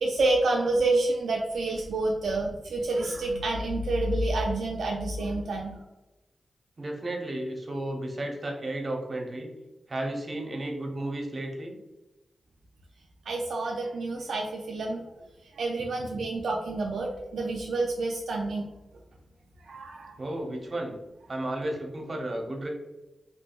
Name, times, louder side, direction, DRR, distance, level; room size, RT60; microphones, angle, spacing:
voice 1, 0.0-5.8 13.3-15.0 15.5-18.7 19.6-20.1, right 2 dB, 80° right, 0 dB, 0.3 m, -28 dB
voice 2, 6.8-9.5 9.9-11.7 20.2-20.9 21.3-22.7, right 1 dB, 45° right, 1 dB, 0.7 m, -33 dB
2.7 x 2.6 x 2.3 m, 1.0 s
cardioid pair, 50°, 0 cm